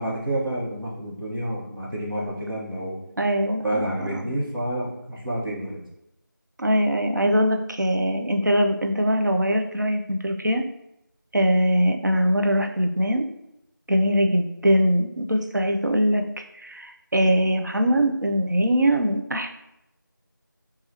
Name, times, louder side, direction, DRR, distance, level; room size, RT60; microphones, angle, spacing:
voice 1, 0.0-3.0 3.5-5.8, right 1 dB, 85° right, -4 dB, 1.0 m, -29 dB
voice 2, 3.2-4.3 6.6-10.6 11.3-13.3 13.9-19.5, equal, 60° right, 4 dB, 0.4 m, -22 dB
3.2 x 2.3 x 2.7 m, 0.84 s
figure-of-eight pair, 180°, 11 cm